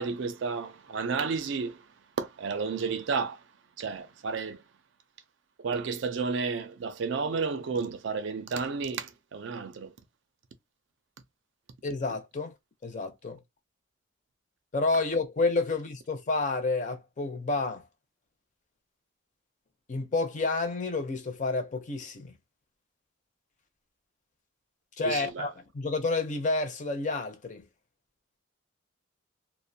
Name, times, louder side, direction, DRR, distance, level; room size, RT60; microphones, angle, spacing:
voice 1, 0.0-1.8 2.2-3.4 3.8-4.6 5.6-9.9 25.0-25.5, right 5 dB, 65° right, 0.4 m, -32 dB
voice 2, 11.8-12.5 12.8-13.4 14.7-17.8 19.9-22.3 25.0-27.6, left 3 dB, 40° left, 0.5 m, -29 dB
2.5 x 2.1 x 2.6 m
head